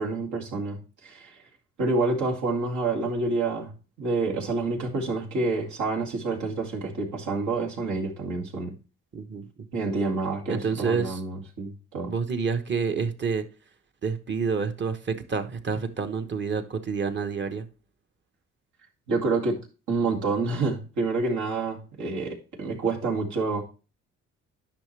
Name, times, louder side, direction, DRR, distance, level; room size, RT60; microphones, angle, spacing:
voice 1, 0.0-1.3 1.8-3.7 4.0-8.8 9.7-12.1 19.1-19.6 19.9-23.6, right 3 dB, 75° right, 2.4 m, -28 dB
voice 2, 9.1-9.5 10.5-11.2 12.1-13.4 14.0-17.7, right 5 dB, 40° right, 1.1 m, -28 dB
10.5 x 5.9 x 3.3 m
cardioid pair, 90°, 30 cm